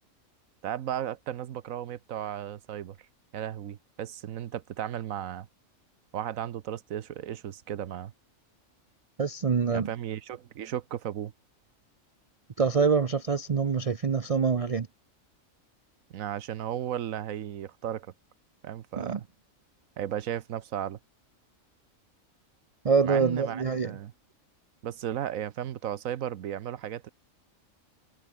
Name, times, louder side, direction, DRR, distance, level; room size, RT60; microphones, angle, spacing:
voice 1, 0.6-3.0 3.3-5.5 6.1-8.1 9.7-11.3 16.1-18.1 18.6-19.2 20.0-21.0 23.0-24.1 24.8-27.1, right 10 dB, 75° right, 1.2 m, -35 dB
voice 2, 9.2-9.9 12.6-14.9 19.0-19.2 22.8-23.9, right 5 dB, 45° right, 0.5 m, -25 dB
omnidirectional pair, 1.4 m